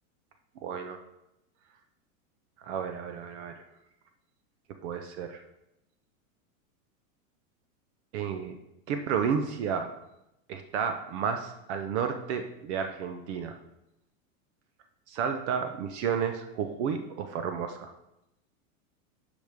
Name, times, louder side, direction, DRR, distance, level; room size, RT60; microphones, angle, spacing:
voice 1, 0.6-1.0 2.6-3.5 4.8-5.4 8.1-8.6 8.9-9.9 10.5-13.6 15.1-17.9, right 7 dB, 50° right, 7 dB, 0.8 m, -31 dB
10.0 x 5.1 x 3.5 m, 0.87 s
supercardioid pair, 140°, 43 cm